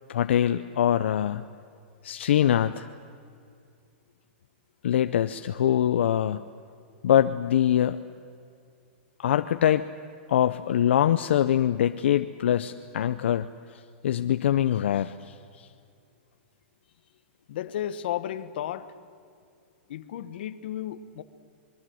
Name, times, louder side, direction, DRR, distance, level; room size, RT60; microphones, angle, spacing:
voice 1, 0.1-1.4 2.0-2.9 4.8-6.4 7.0-8.0 9.2-9.9 10.3-15.3, left 10 dB, 75° left, 10 dB, 0.7 m, -23 dB
voice 2, 17.5-18.9 19.9-21.2, left 11 dB, 55° left, 12 dB, 1.3 m, -33 dB
26.5 x 22.5 x 7.9 m, 2.4 s
supercardioid pair, 165°, 6 cm